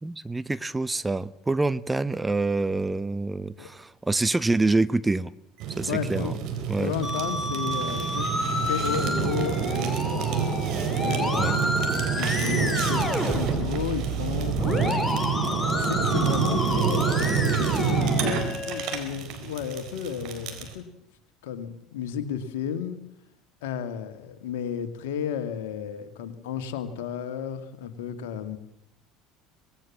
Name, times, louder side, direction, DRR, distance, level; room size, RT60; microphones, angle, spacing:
voice 1, 0.0-5.3 5.8-6.3 6.7-6.9 11.4-11.6, right 2 dB, 15° right, 0.8 m, -26 dB
Fire, 5.6-20.7, right 6 dB, 55° right, 4.2 m, -27 dB
voice 2, 5.9-6.3 6.8-8.3 8.7-10.5 11.0-11.8 12.2-15.2 15.8-20.9 21.4-23.0 23.6-28.6, left 8 dB, 70° left, 2.1 m, -33 dB
Musical instrument, 7.0-19.0, left 1 dB, 5° left, 4.3 m, -30 dB
24.5 x 19.5 x 7.4 m
hypercardioid pair, 70°, 0 cm